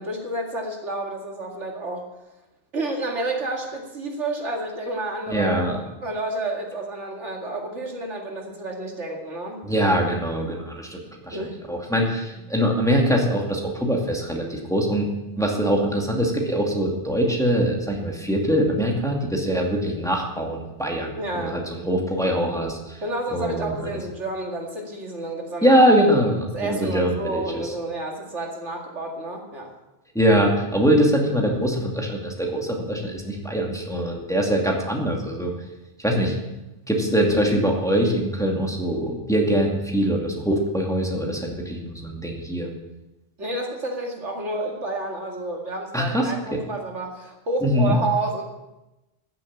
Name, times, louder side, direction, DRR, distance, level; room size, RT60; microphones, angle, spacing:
voice 1, 0.0-2.0 2.7-9.6 11.3-11.6 21.2-21.6 23.0-25.8 26.5-29.7 43.4-48.4, right 2 dB, 90° right, 1 dB, 2.6 m, -30 dB
voice 2, 5.3-5.8 9.6-15.1 15.4-23.0 23.3-24.0 25.6-27.7 30.1-35.5 36.0-36.4 36.9-42.7 45.9-46.6 47.6-48.0, equal, 5° left, -1 dB, 2.3 m, -23 dB
13.5 x 7.7 x 8.7 m, 0.98 s
omnidirectional pair, 1.2 m